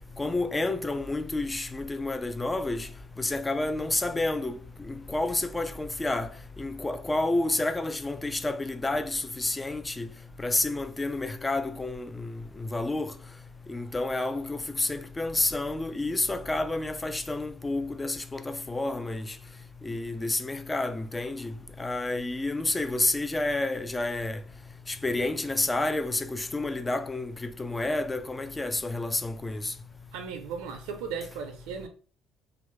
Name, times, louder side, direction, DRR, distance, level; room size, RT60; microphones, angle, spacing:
voice 1, 0.2-2.9 3.2-6.3 6.6-10.1 10.4-13.1 13.7-19.3 19.8-24.4 24.9-29.7, left 2 dB, 15° left, 0.4 m, -30 dB
voice 2, 30.1-31.9, right 6 dB, 90° right, 0.5 m, -36 dB
2.6 x 2.4 x 3.1 m
supercardioid pair, 90°, 0 cm